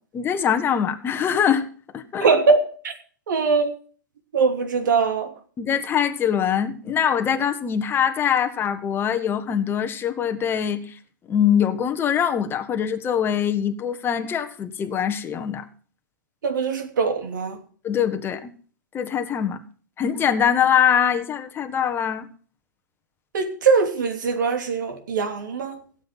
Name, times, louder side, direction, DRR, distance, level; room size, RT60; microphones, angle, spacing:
voice 1, 0.1-1.7 1.9-2.3 5.6-10.8 11.3-15.6 17.8-18.5 18.9-19.6 20.0-22.3, left 8 dB, 20° left, 1.4 m, -23 dB
voice 2, 2.2-2.6 2.8-2.9 3.3-3.7 4.3-5.3 16.4-17.6 23.3-25.8, right 4 dB, 65° right, 2.9 m, -21 dB
17.0 x 8.1 x 5.8 m
figure-of-eight pair, 115°, 11 cm